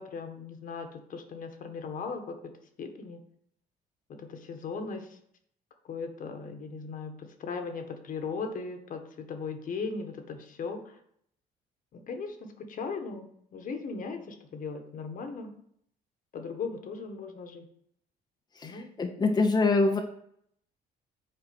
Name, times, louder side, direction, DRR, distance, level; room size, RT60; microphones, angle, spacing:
voice 1, 0.0-2.5 2.8-3.2 4.1-5.1 5.9-10.8 11.9-15.5 16.3-17.7 18.6-18.9, left 4 dB, 55° left, 5 dB, 1.6 m, -38 dB
voice 2, 18.6-20.0, left 3 dB, 25° left, 2 dB, 0.9 m, -25 dB
8.0 x 4.6 x 6.2 m, 0.68 s
cardioid pair, 110°, 17 cm